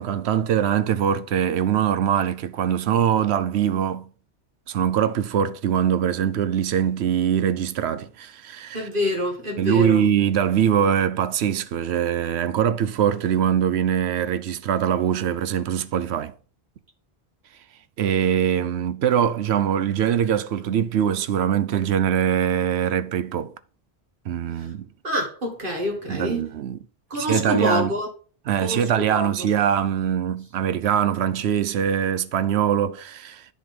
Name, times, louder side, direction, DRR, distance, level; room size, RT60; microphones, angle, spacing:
voice 1, 0.0-4.1 4.7-8.9 9.6-16.3 18.0-23.5 24.3-24.9 26.1-26.8 27.1-27.9 28.5-33.5, right 9 dB, 80° right, 0.9 m, -22 dB
voice 2, 8.7-10.0 24.6-24.7 25.0-26.4 27.1-28.1 28.6-28.8 29.1-29.3, equal, 55° right, 1.9 m, -26 dB
10.5 x 3.9 x 5.2 m
omnidirectional pair, 1.1 m